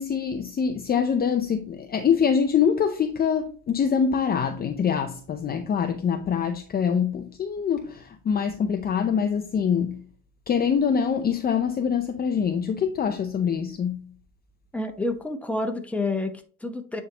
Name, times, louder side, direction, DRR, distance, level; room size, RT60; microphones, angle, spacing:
voice 1, 0.0-10.0 10.5-14.1, left 7 dB, 25° left, 0.6 m, -24 dB
voice 2, 14.7-17.0, left 2 dB, 5° left, 1.0 m, -29 dB
9.1 x 3.6 x 2.9 m
cardioid pair, 115°, 35 cm